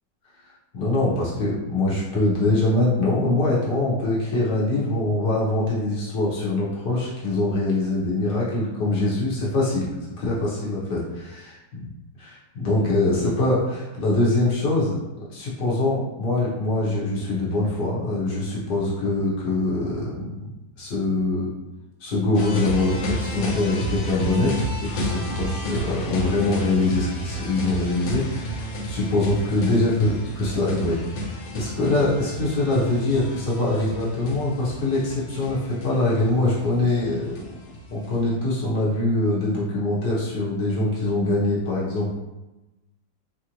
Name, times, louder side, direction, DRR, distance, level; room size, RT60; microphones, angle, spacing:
voice 1, 0.7-9.9 10.2-11.6 12.2-15.0 15.3-20.5 20.8-21.5 22.0-31.3 31.5-37.4 37.9-42.1, left 2 dB, 65° left, -7 dB, 1.6 m, -23 dB
sound 1, 22.3-38.2, equal, 85° left, 1.6 m, -32 dB
4.6 x 2.6 x 3.0 m, 1.0 s
omnidirectional pair, 2.0 m